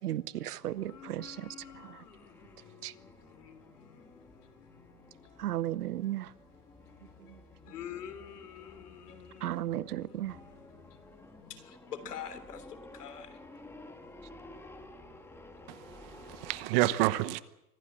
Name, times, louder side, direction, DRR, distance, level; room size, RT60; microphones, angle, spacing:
voice 1, 0.0-1.5 1.8-2.0 2.8-2.9 5.4-6.3 7.3-7.4 9.4-10.4, right 13 dB, 75° right, 1.0 m, -35 dB
voice 2, 0.6-4.0 4.5-4.7 5.3-5.4 7.7-9.6 10.0-10.9 11.4-12.6 13.0-13.3, left 8 dB, 75° left, 3.4 m, -47 dB
sound 1, 0.7-16.7, left 2 dB, 5° left, 2.1 m, -53 dB
voice 3, 15.7-17.4, right 17 dB, 40° right, 1.1 m, -29 dB
25.0 x 15.5 x 8.7 m
hypercardioid pair, 135°, 46 cm